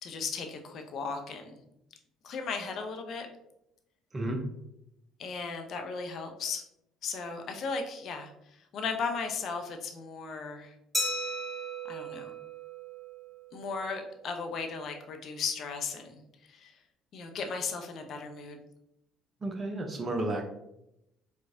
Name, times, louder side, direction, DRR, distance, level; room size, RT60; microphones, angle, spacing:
voice 1, 0.0-1.6 2.2-3.3 5.2-6.6 7.0-10.7 11.9-12.3 13.5-16.8 17.1-18.6, left 5 dB, 50° left, 4 dB, 0.6 m, -36 dB
Glass, 10.9-13.4, equal, ahead, 1.2 m, -35 dB
voice 2, 19.4-20.4, right 2 dB, 30° right, 2 dB, 0.6 m, -32 dB
4.6 x 2.3 x 2.5 m, 0.82 s
figure-of-eight pair, 55°, 0 cm